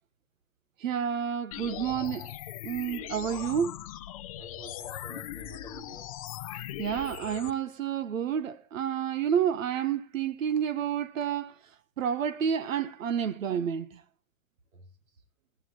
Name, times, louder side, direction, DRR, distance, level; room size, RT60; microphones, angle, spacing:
voice 1, 0.8-2.3 2.6-3.7 6.8-11.5 12.0-14.0, right 8 dB, 65° right, 1.5 m, -29 dB
sound 1, 1.5-7.5, left 13 dB, 25° left, 0.7 m, -40 dB
voice 2, 4.4-6.2 14.7-15.2, right 3 dB, 85° right, 4.6 m, -50 dB
19.5 x 15.5 x 3.0 m
hypercardioid pair, 170°, 42 cm